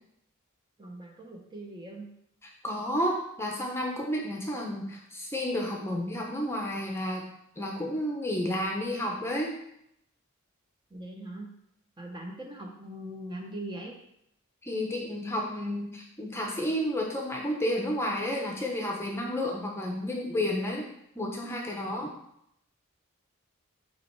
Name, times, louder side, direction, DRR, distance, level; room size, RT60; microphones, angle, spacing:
voice 1, 0.8-2.1 10.9-11.5 12.0-13.9, right 1 dB, 20° right, 1 dB, 0.9 m, -41 dB
voice 2, 2.4-7.3 7.6-9.5 14.6-20.8 21.1-22.1, left 1 dB, 10° left, 0 dB, 0.8 m, -31 dB
8.3 x 3.1 x 4.6 m, 0.76 s
head